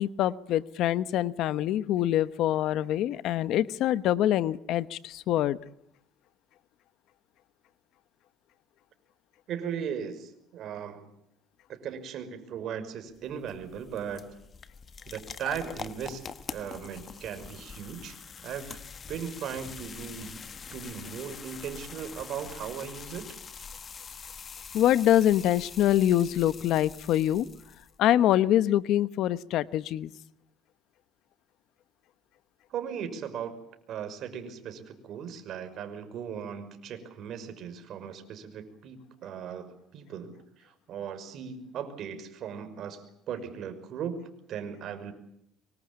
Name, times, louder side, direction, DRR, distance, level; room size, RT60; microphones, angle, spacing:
voice 1, 0.0-5.6 24.7-27.5 28.0-30.1, left 12 dB, 60° left, 15 dB, 1.1 m, -25 dB
voice 2, 9.5-11.1 11.7-14.3 15.1-18.2 18.4-18.8 19.1-20.4 20.7-23.2 32.7-33.6 33.9-45.1, right 8 dB, 55° right, 9 dB, 5.8 m, -38 dB
sound 1, 13.1-28.0, left 6 dB, 30° left, 1.4 m, -44 dB
24.5 x 24.5 x 8.7 m, 0.74 s
cardioid pair, 125°, 0 cm